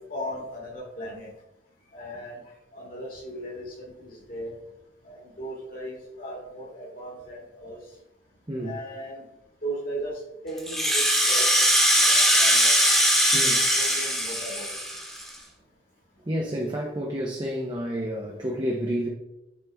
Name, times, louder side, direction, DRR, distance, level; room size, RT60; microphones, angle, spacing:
voice 1, 0.1-1.3 1.9-2.4 2.7-4.5 5.0-7.8 8.6-9.2 9.6-11.6 12.0-12.7 13.5-14.7, right 1 dB, 50° left, -2 dB, 2.1 m, -37 dB
Rattle (instrument), 10.6-15.3, equal, 5° left, 1.4 m, -21 dB
voice 2, 13.3-13.7 16.3-19.1, equal, 25° right, -1 dB, 0.8 m, -30 dB
9.2 x 4.1 x 3.4 m, 0.89 s
head